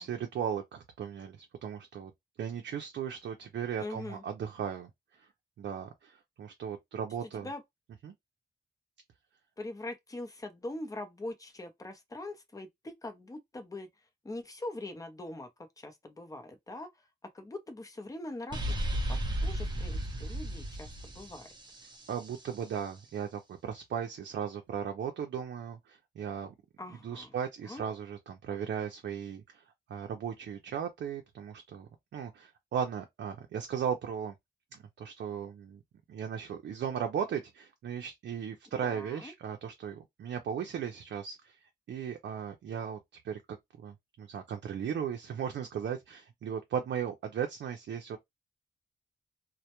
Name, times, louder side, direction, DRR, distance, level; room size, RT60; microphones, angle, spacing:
voice 1, 0.0-2.1 2.4-4.9 5.2-5.3 5.6-7.5 8.0-8.1 22.1-26.5 27.0-29.6 29.9-34.3 34.7-35.8 36.1-41.6 41.9-43.0 43.2-48.2, right 8 dB, 85° right, 0.5 m, -37 dB
voice 2, 3.8-4.2 7.4-7.6 9.6-13.9 14.2-15.5 15.8-17.1 17.3-18.8 19.1-21.5 26.8-27.3 27.6-27.8 38.8-39.3, left 2 dB, 20° left, 0.6 m, -42 dB
sound 1, 18.5-22.3, right 1 dB, 25° right, 0.6 m, -34 dB
2.1 x 2.1 x 2.9 m
wide cardioid pair, 105°, 18 cm